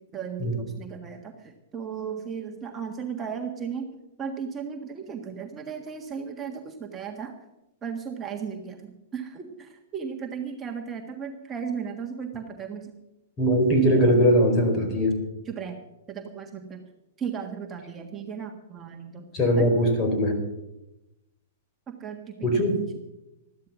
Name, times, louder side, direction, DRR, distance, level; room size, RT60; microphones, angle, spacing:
voice 1, 0.0-3.8 4.2-7.3 7.8-12.9 15.4-15.8 16.1-16.8 17.2-19.3 19.5-19.7 21.9-22.6, right 7 dB, 20° right, 2 dB, 1.6 m, -35 dB
voice 2, 13.4-15.2 19.3-20.4 22.4-22.8, equal, 30° left, 4 dB, 4.6 m, -21 dB
13.5 x 12.0 x 6.2 m, 0.91 s
hypercardioid pair, 125°, 0 cm